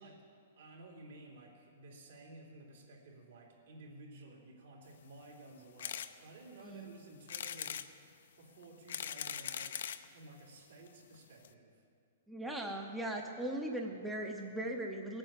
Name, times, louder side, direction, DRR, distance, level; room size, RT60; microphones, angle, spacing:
voice 1, 0.0-8.1 8.4-11.9, right 2 dB, 70° right, -1 dB, 3.5 m, -55 dB
sound 1, 5.8-6.1 6.6-6.7 7.3-7.9 8.6-10.1 10.9-11.0 11.1-11.2 11.4-11.5, left 9 dB, 65° left, 0.7 m, -40 dB
voice 2, 12.3-15.2, right 1 dB, 5° right, 1 dB, 0.7 m, -39 dB
18.5 x 8.9 x 7.5 m, 2.3 s
hypercardioid pair, 165°, 0 cm